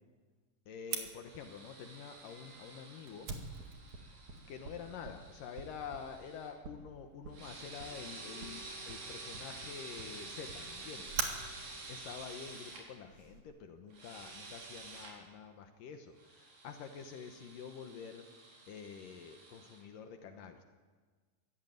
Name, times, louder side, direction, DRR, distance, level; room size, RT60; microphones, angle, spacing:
voice 1, 0.7-3.3 4.5-11.3 11.9-18.3 18.7-20.6, left 6 dB, 75° left, 5 dB, 2.8 m, -48 dB
Fire, 0.9-13.4, right 5 dB, 60° right, 3.5 m, -46 dB
sound 1, 1.2-6.5 7.3-12.8 13.9-15.1 16.2-19.8, right 3 dB, 85° right, 6.2 m, -50 dB
24.5 x 15.0 x 9.3 m, 1.4 s
omnidirectional pair, 3.9 m